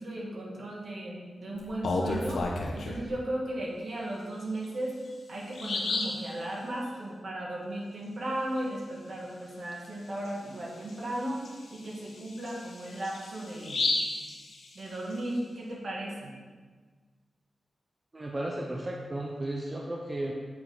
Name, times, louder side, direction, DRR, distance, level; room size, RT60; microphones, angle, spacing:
voice 1, 0.0-2.5 2.7-5.0 5.3-11.4 11.7-13.9 14.7-16.3, right 1 dB, 65° right, -3 dB, 1.8 m, -36 dB
Bird vocalization bird call bird song, 1.6-3.1 4.5-4.6 5.1-5.2 5.5-6.2 9.7-9.9 10.2-10.3 10.9-15.1, left 2 dB, 85° left, 0.9 m, -33 dB
voice 2, 18.1-20.3, right 1 dB, 30° right, -1 dB, 0.7 m, -34 dB
8.4 x 4.4 x 3.9 m, 1.4 s
cardioid pair, 80°, 0 cm